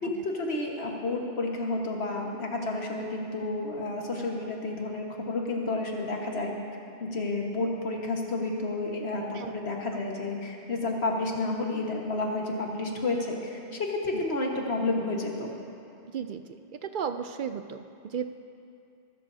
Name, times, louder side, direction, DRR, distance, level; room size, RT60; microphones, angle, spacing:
voice 1, 0.0-6.5 7.0-15.5, left 2 dB, 70° left, 0 dB, 1.8 m, -31 dB
voice 2, 16.1-16.4 16.8-18.3, right 7 dB, 60° right, 9 dB, 0.6 m, -34 dB
22.5 x 13.0 x 2.8 m, 2.5 s
omnidirectional pair, 1.1 m